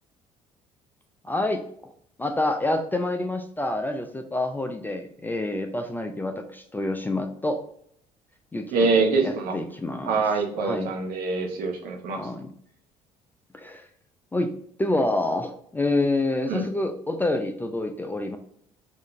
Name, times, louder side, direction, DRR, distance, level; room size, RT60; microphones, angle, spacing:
voice 1, 1.2-1.6 2.2-7.6 8.5-10.3 10.6-10.9 12.2-12.5 13.5-13.9 14.3-14.5 14.8-18.4, left 2 dB, 10° left, 5 dB, 0.4 m, -27 dB
voice 2, 8.7-9.5 10.1-12.2 16.5-16.6, right 4 dB, 55° right, 1 dB, 0.8 m, -24 dB
3.7 x 2.5 x 3.0 m, 0.65 s
figure-of-eight pair, 50°, 18 cm